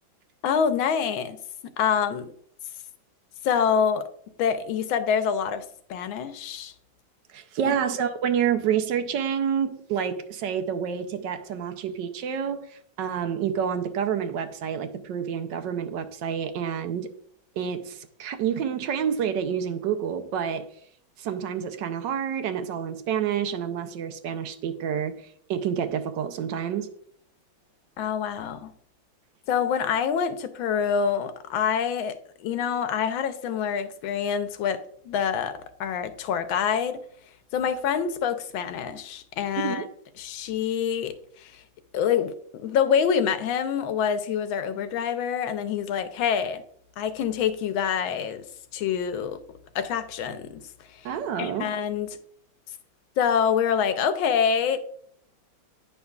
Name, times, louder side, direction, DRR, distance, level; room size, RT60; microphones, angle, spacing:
voice 1, 0.4-1.4 1.8-2.3 3.4-4.1 4.4-5.6 5.9-6.7 7.6-7.7 28.0-28.7 29.5-37.0 37.5-39.8 40.2-41.6 41.9-46.6 47.0-48.4 48.7-49.4 49.7-50.6 51.0-51.1 51.4-52.1 53.2-54.8, left 7 dB, 90° left, 1.5 m, -26 dB
voice 2, 7.3-17.1 17.6-20.7 21.2-25.2 25.5-26.9 39.6-39.9 51.0-51.7, right 8 dB, 75° right, 1.2 m, -28 dB
9.5 x 5.6 x 2.3 m
omnidirectional pair, 2.1 m